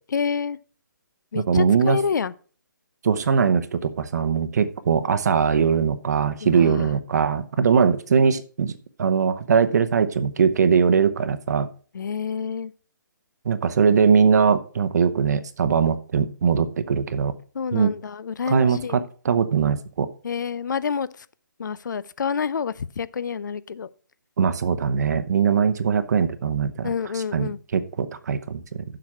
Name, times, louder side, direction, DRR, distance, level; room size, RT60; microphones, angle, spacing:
voice 1, 0.1-0.6 1.3-2.3 6.4-6.9 11.9-12.7 17.5-19.0 20.2-21.3 21.6-23.9 26.8-27.6, left 6 dB, 65° left, 0.5 m, -28 dB
voice 2, 1.3-2.0 3.0-8.7 9.0-11.7 13.4-17.3 17.7-17.9 18.5-20.1 24.4-26.9 27.3-28.8, right 6 dB, 55° right, 0.8 m, -21 dB
7.5 x 6.0 x 6.0 m
figure-of-eight pair, 145°, 11 cm